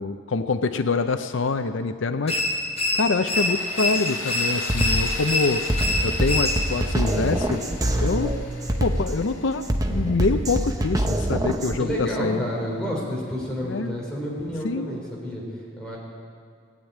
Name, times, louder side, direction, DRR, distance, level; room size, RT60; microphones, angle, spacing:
voice 1, 0.0-2.4 2.9-5.6 6.0-7.6 8.0-8.3 8.8-12.4 13.6-13.9 14.6-14.9, left 3 dB, 70° left, 9 dB, 0.5 m, -25 dB
sound 1, 2.3-6.9, left 1 dB, 30° left, 1.5 m, -26 dB
Tools, 3.3-12.1, left 4 dB, 90° left, 2.2 m, -39 dB
Drum kit, 3.9-4.1 4.6-11.8, right 1 dB, 20° right, 0.8 m, -25 dB
voice 2, 11.8-15.4 15.8-16.0, equal, 5° left, -5 dB, 3.8 m, -29 dB
18.0 x 8.8 x 9.2 m, 2.1 s
head